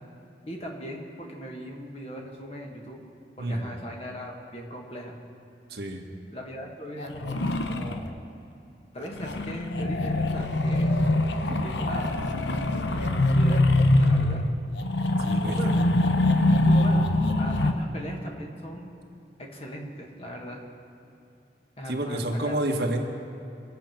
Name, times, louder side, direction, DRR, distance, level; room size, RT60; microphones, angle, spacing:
voice 1, 0.5-3.0 3.4-5.2 6.3-8.2 8.9-11.0 11.4-12.2 12.9-13.7 14.0-14.4 15.4-16.2 16.6-18.9 19.4-20.6 21.8-22.6, equal, 35° left, 0 dB, 1.8 m, -39 dB
voice 2, 3.4-3.7 5.7-6.0 11.4-11.6 15.2-15.7 21.9-23.1, right 1 dB, 65° right, 2 dB, 1.6 m, -29 dB
sound 1, 7.0-8.1 9.1-17.7, left 1 dB, 80° left, 0.9 m, -23 dB
24.0 x 8.2 x 6.0 m, 2.7 s
head